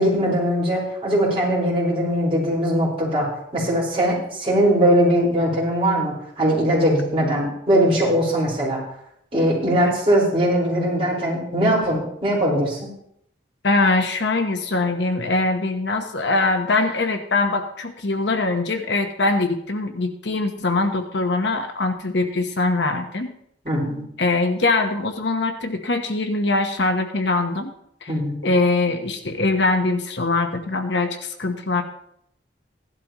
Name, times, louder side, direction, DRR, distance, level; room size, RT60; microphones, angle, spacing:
voice 1, 0.0-3.3 3.5-8.8 9.3-12.9 23.6-24.0 28.1-28.5, equal, 30° right, -6 dB, 4.9 m, -20 dB
voice 2, 13.6-23.3 24.2-27.7 28.0-28.1 28.4-31.8, left 3 dB, 70° left, 5 dB, 1.0 m, -22 dB
16.0 x 12.0 x 3.1 m, 0.73 s
head